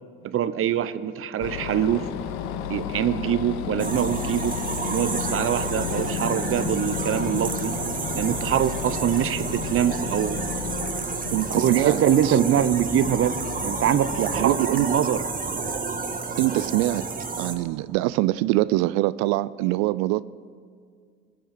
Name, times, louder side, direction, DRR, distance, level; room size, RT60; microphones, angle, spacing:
voice 1, 0.2-2.1 2.7-4.6 4.9-7.8 8.1-10.4 11.5-13.4 13.6-15.2, right 10 dB, 45° right, 14 dB, 0.8 m, -24 dB
sound 1, 1.4-14.6, left 9 dB, 65° left, 0.9 m, -33 dB
sound 2, 3.8-17.5, right 4 dB, 25° right, 1.7 m, -30 dB
voice 2, 11.3-12.4 14.2-14.9 16.4-17.1 17.4-20.2, right 18 dB, 65° right, 18 dB, 0.4 m, -24 dB
19.5 x 7.1 x 7.6 m, 2.1 s
hypercardioid pair, 60°, 30 cm